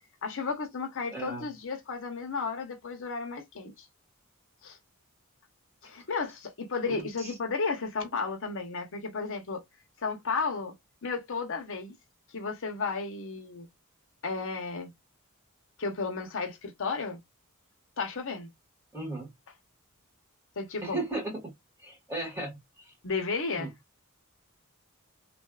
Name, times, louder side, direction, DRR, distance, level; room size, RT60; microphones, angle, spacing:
voice 1, 0.2-3.9 4.6-4.8 5.8-9.6 10.0-10.7 11.0-11.9 12.3-13.7 14.2-14.9 15.8-17.2 18.0-18.5 20.6-21.0 23.0-23.7, left 4 dB, 65° left, 0.9 m, -33 dB
voice 2, 1.1-1.5 6.9-7.3 18.9-19.3 20.8-21.5 21.8-22.9 23.6-23.7, right 2 dB, 10° right, 1.6 m, -36 dB
3.2 x 2.5 x 2.2 m
head